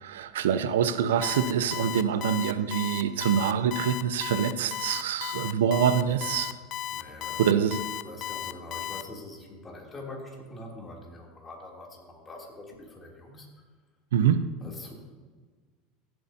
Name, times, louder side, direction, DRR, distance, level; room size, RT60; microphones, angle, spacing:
voice 1, 0.0-6.5 7.4-7.8 14.1-14.4, right 8 dB, 80° right, 12 dB, 0.6 m, -25 dB
Alarm, 1.2-9.0, left 13 dB, 50° left, 0.5 m, -34 dB
voice 2, 6.0-6.5 6.9-13.6 14.6-14.9, left 2 dB, 25° left, -2 dB, 3.0 m, -44 dB
15.5 x 7.8 x 2.8 m, 1.5 s
hypercardioid pair, 90°, 0 cm